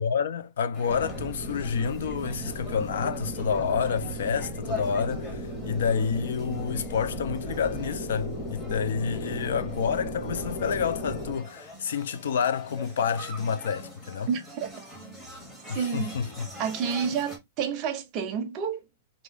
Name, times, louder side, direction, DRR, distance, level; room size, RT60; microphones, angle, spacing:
voice 1, 0.0-14.3 15.7-16.5, left 6 dB, 80° left, 0.4 m, -29 dB
sound 1, 0.7-17.4, left 1 dB, 5° left, 0.8 m, -44 dB
sound 2, 0.9-11.3, equal, 30° left, 1.2 m, -35 dB
voice 2, 14.3-14.7 15.7-16.2 16.6-18.8, right 7 dB, 25° right, 0.6 m, -29 dB
2.7 x 2.5 x 3.4 m
supercardioid pair, 175°, 0 cm